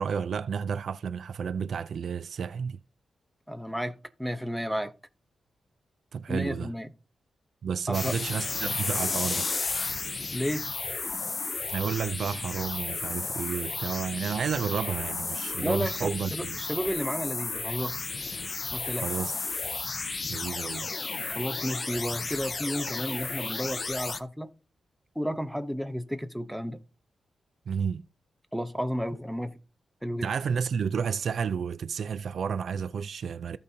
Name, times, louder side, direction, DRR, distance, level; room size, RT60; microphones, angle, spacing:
voice 1, 0.0-2.8 6.1-6.7 7.6-9.8 11.7-16.6 19.0-19.3 20.3-20.9 27.7-28.1 30.2-33.6, right 6 dB, 70° right, 0.4 m, -31 dB
voice 2, 3.5-4.9 6.3-6.9 7.9-8.2 10.3-10.7 15.6-18.0 18.7-19.2 21.2-24.5 25.1-26.8 28.5-29.6 30.0-30.3, equal, ahead, 0.8 m, -32 dB
sound 1, 7.9-24.2, left 4 dB, 40° left, 0.7 m, -33 dB
15.0 x 5.2 x 2.8 m
cardioid pair, 90°, 0 cm